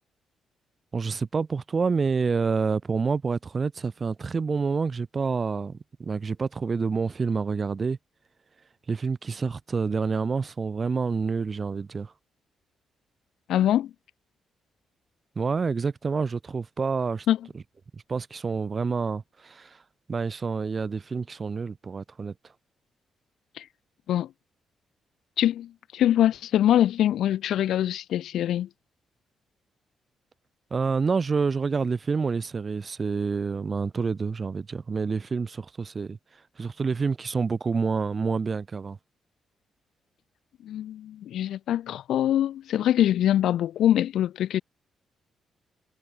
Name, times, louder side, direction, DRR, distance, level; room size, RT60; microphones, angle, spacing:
voice 1, 0.9-8.0 8.9-12.1 15.4-17.3 17.9-19.8 20.1-22.3 30.7-36.2 36.6-39.0, right 5 dB, 35° right, 2.9 m, -28 dB
voice 2, 13.5-13.9 17.3-17.4 23.6-23.7 24.1-24.3 25.4-28.7 40.6-44.6, left 11 dB, 80° left, 1.7 m, -23 dB
cardioid pair, 110°, 0 cm